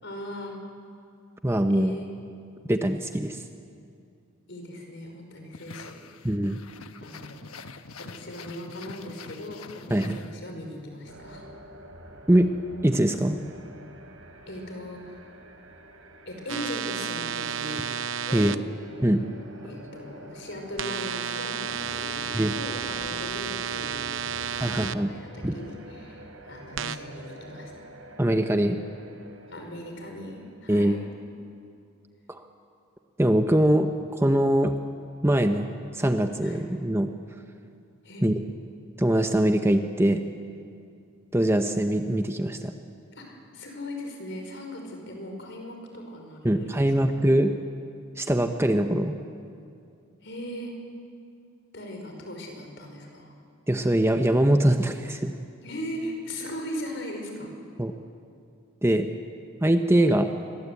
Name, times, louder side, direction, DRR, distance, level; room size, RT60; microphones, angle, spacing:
voice 1, 0.0-0.6 1.7-2.1 4.5-6.0 7.0-11.4 14.5-15.3 16.3-17.8 18.3-18.6 19.7-27.7 29.5-31.0 36.4-36.6 38.0-38.2 43.1-47.2 50.2-50.7 51.7-53.3 55.6-57.5 60.0-60.2, left 1 dB, 55° left, 3 dB, 5.4 m, -39 dB
voice 2, 1.4-2.0 2.7-3.4 6.2-6.6 9.9-10.2 12.3-12.5 12.8-13.4 18.3-18.5 19.0-19.2 22.3-22.5 24.6-25.1 25.4-25.5 28.2-28.8 30.7-30.9 32.3-32.4 33.2-34.7 35.2-37.1 38.2-38.3 39.0-40.2 41.3-42.7 46.4-47.5 48.2-49.1 53.7-55.3 57.8-57.9 58.8-59.1 59.6-60.3, right 1 dB, 10° right, 6 dB, 0.9 m, -22 dB
sound 1, 5.5-10.7, left 4 dB, 85° left, 1.2 m, -45 dB
sound 2, 11.1-30.5, equal, 80° right, 3.9 m, -47 dB
sound 3, 16.5-18.6 20.8-24.9 26.8-27.0, right 8 dB, 60° right, 0.7 m, -32 dB
29.0 x 22.5 x 8.4 m, 2.4 s
head